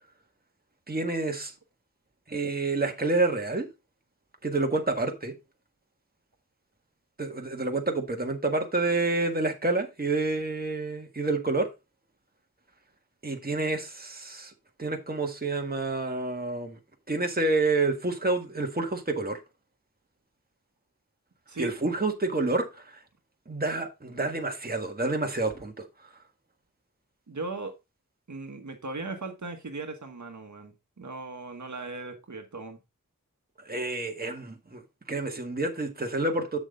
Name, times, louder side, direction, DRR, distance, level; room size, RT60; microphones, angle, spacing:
voice 1, 0.9-1.5 2.3-3.7 4.4-5.3 7.2-11.7 13.2-14.5 14.8-16.8 17.1-19.4 21.6-22.8 23.5-25.8 33.6-34.8 35.1-36.6, right 3 dB, 30° right, 1.6 m, -28 dB
voice 2, 21.5-21.9 27.3-27.7 28.3-32.8, right 3 dB, 60° right, 1.3 m, -38 dB
8.1 x 6.3 x 3.6 m
wide cardioid pair, 75°, 32 cm